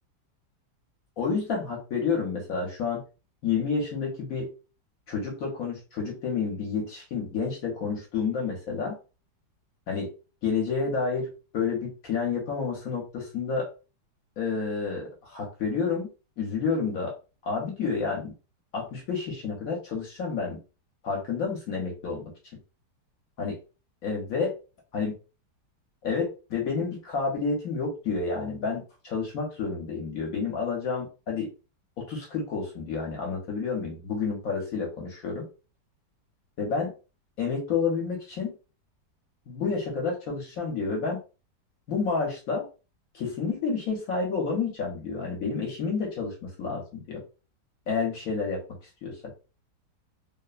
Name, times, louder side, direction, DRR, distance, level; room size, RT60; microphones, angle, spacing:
voice 1, 1.2-3.0 3.4-4.5 5.1-9.0 9.9-10.1 10.4-13.7 14.4-16.1 16.4-17.1 17.4-18.4 18.7-20.6 21.0-22.6 23.4-23.6 24.0-24.5 24.9-25.2 26.0-31.5 32.0-35.5 36.6-36.9 37.4-38.6 39.5-41.2 41.9-42.6 43.1-47.2 47.9-48.6 49.0-49.3, left 5 dB, 60° left, -1 dB, 1.0 m, -30 dB
3.0 x 2.1 x 2.3 m, 0.32 s
omnidirectional pair, 1.8 m